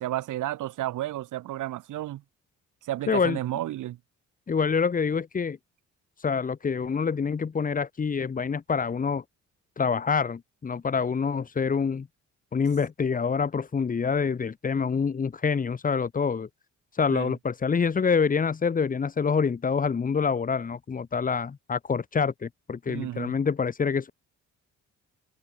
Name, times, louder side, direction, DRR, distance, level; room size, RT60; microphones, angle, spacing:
voice 1, 0.0-2.2 2.8-4.0 17.1-17.3 22.9-23.3, right 14 dB, 85° right, 4.6 m, -32 dB
voice 2, 3.1-3.4 4.5-5.6 6.2-9.2 9.8-12.1 12.5-16.5 16.9-24.1, left 5 dB, 25° left, 0.9 m, -26 dB
cardioid pair, 90°, 30 cm